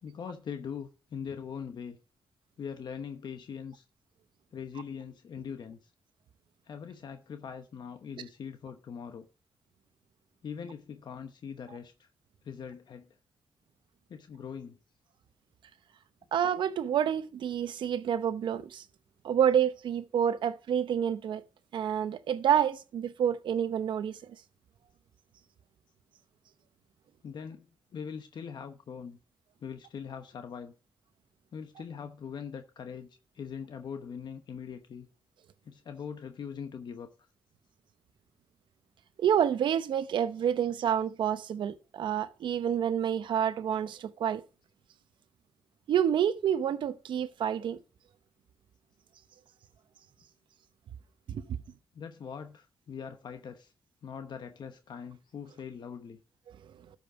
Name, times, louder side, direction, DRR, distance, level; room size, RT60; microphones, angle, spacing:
voice 1, 0.0-2.0 2.6-3.8 4.5-5.9 6.6-9.3 10.4-12.1 12.4-13.1 14.1-14.8 27.2-29.2 29.6-30.7 31.5-35.1 35.6-37.1 51.9-53.7 54.0-56.2, left 7 dB, 65° left, 1.0 m, -42 dB
voice 2, 16.3-18.8 19.2-21.4 21.7-24.2 39.2-44.4 45.9-47.8 51.3-51.4, right 9 dB, 80° right, 0.8 m, -28 dB
13.0 x 5.4 x 4.9 m
cardioid pair, 80°, 8 cm